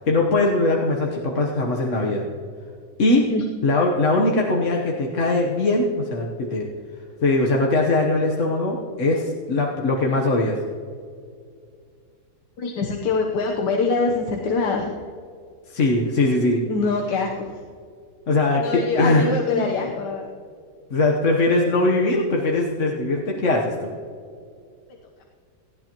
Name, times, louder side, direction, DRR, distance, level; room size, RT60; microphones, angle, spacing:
voice 1, 0.1-2.2 3.0-3.3 3.6-6.7 7.2-10.6 15.7-16.6 18.3-19.6 20.9-23.9, left 2 dB, 50° left, -1 dB, 1.4 m, -21 dB
voice 2, 12.6-14.9 16.7-17.6 18.6-20.3 21.3-21.5, left 4 dB, 90° left, 1 dB, 1.7 m, -24 dB
19.0 x 14.0 x 3.0 m, 2.2 s
omnidirectional pair, 1.8 m